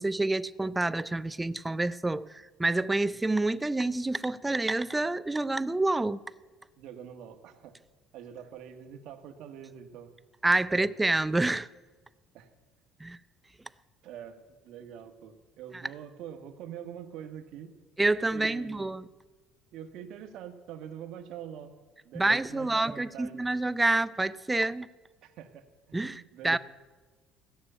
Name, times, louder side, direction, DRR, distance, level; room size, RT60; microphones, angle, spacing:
voice 1, 0.0-6.2 10.4-11.7 13.0-13.2 18.0-19.0 22.2-24.9 25.9-26.6, right 2 dB, 10° right, 0.4 m, -28 dB
voice 2, 6.8-7.7 8.1-10.1 10.7-10.9 12.3-12.5 14.0-14.4 14.6-17.8 18.3-19.0 19.7-21.7 22.0-23.4 25.2-26.6, right 9 dB, 70° right, 1.4 m, -44 dB
16.0 x 6.9 x 10.0 m
cardioid pair, 130°, 0 cm